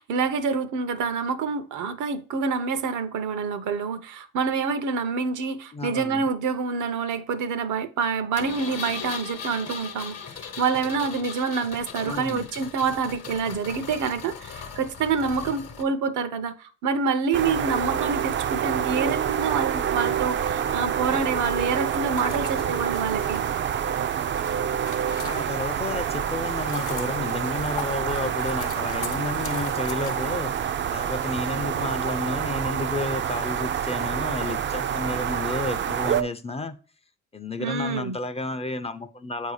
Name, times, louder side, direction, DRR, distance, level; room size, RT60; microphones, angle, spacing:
voice 1, 0.0-10.2 10.6-23.4 37.6-38.2, right 5 dB, 75° right, 0.7 m, -27 dB
voice 2, 5.7-6.2 12.0-12.5 25.2-36.8 37.3-39.5, left 2 dB, 20° left, 0.4 m, -31 dB
Engine, 8.4-15.8, left 6 dB, 55° left, 0.9 m, -38 dB
sound 1, 17.3-36.2, right 9 dB, 40° right, 0.4 m, -27 dB
sound 2, 21.8-25.9 26.3-31.0, left 7 dB, 85° left, 0.8 m, -41 dB
7.6 x 2.7 x 4.7 m
cardioid pair, 90°, 30 cm